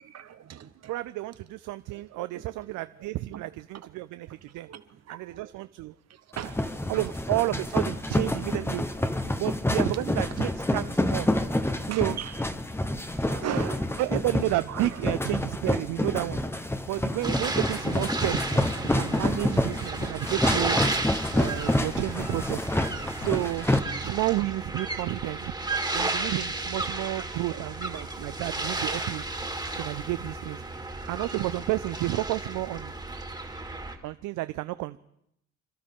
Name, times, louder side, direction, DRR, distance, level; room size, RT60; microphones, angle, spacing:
voice 1, 0.0-0.9 1.9-2.5 3.3-3.4 4.7-5.5 6.1-6.7 11.9-12.4 12.9-14.0 14.7-14.9 19.2-19.5 21.4-21.5 27.5-27.7 28.2-28.3, right 10 dB, 60° right, 12 dB, 1.0 m, -39 dB
voice 2, 0.9-4.7 5.1-5.9 6.9-8.8 9.4-11.3 11.9-12.2 14.0-16.4 16.9-18.5 18.9-20.8 21.4-22.7 23.2-23.7 24.0-25.5 25.9-29.2 29.7-30.6 31.1-32.9 34.0-35.0, right 17 dB, 90° right, 13 dB, 0.5 m, -31 dB
sound 1, 6.3-23.8, left 1 dB, 10° left, 0.9 m, -28 dB
sound 2, 17.2-34.0, right 2 dB, 15° right, 2.0 m, -33 dB
27.5 x 12.5 x 3.6 m, 0.77 s
cardioid pair, 90°, 30 cm